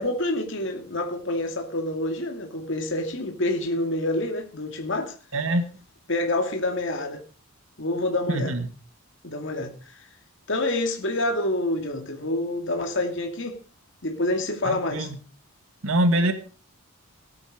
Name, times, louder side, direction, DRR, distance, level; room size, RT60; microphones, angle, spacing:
voice 1, 0.0-5.2 6.1-7.2 7.8-8.6 9.2-10.1 10.5-13.6 14.0-15.1, left 1 dB, 55° left, 2.3 m, -27 dB
voice 2, 5.3-5.6 8.3-8.6 14.7-15.1 15.8-16.3, right 1 dB, 65° right, 1.9 m, -23 dB
18.0 x 9.7 x 5.1 m
head